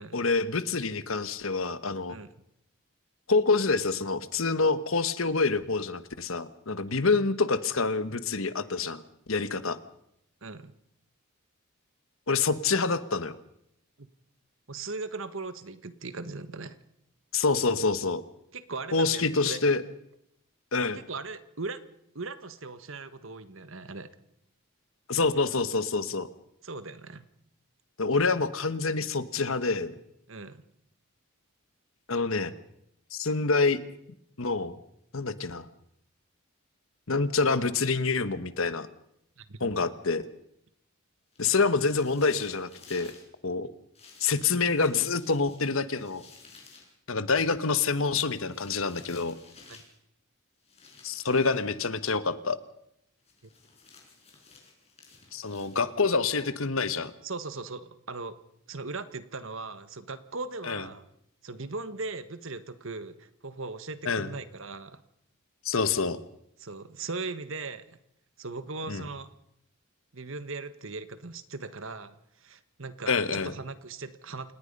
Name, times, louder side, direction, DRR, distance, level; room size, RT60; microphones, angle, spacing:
voice 1, 0.1-2.2 3.3-9.0 9.3-9.8 12.3-13.3 17.3-18.2 18.9-19.8 20.7-21.0 25.1-26.3 28.0-29.9 32.1-32.5 33.1-33.8 34.4-34.8 35.1-35.7 37.1-38.9 39.6-40.2 41.4-43.1 43.4-43.7 44.2-46.2 47.1-49.4 51.0-52.6 55.3-57.1 60.6-60.8 64.1-64.3 65.6-66.2 68.9-69.0 73.1-73.5, left 4 dB, 70° left, 13 dB, 1.3 m, -27 dB
voice 2, 10.4-10.7 14.0-14.1 14.7-16.8 18.5-19.6 20.9-21.8 22.1-24.1 26.6-27.3 30.3-30.6 39.4-39.7 49.7-49.8 56.4-56.6 57.2-58.4 58.7-61.0 61.4-65.0 66.6-68.0 68.4-69.3 70.1-74.5, right 3 dB, 60° right, 12 dB, 1.4 m, -39 dB
sound 1, 41.3-43.3 43.9-46.9 48.2-50.0 50.6-51.7 53.2-56.1, left 4 dB, 30° left, 5.6 m, -54 dB
28.0 x 19.0 x 5.4 m, 0.75 s
head